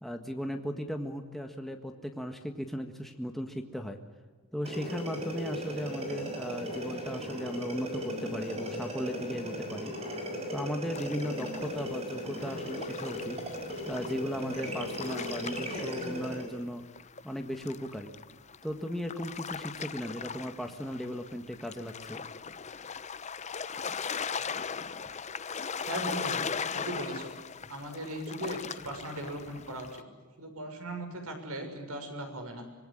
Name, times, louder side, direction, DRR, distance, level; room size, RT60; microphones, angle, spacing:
voice 1, 0.0-4.0 4.5-9.9 10.5-13.4 13.9-16.8 17.2-18.1 18.6-22.2, equal, ahead, 4 dB, 1.6 m, -36 dB
sound 1, 4.6-16.5, equal, 25° right, 6.4 m, -37 dB
sound 2, 10.9-16.6 16.9-30.0, left 6 dB, 30° left, 0.7 m, -39 dB
voice 2, 25.9-26.4 26.7-27.3 27.7-30.0 30.4-32.7, right 1 dB, 80° right, 5 dB, 6.5 m, -38 dB
25.5 x 20.5 x 10.0 m, 1.5 s
head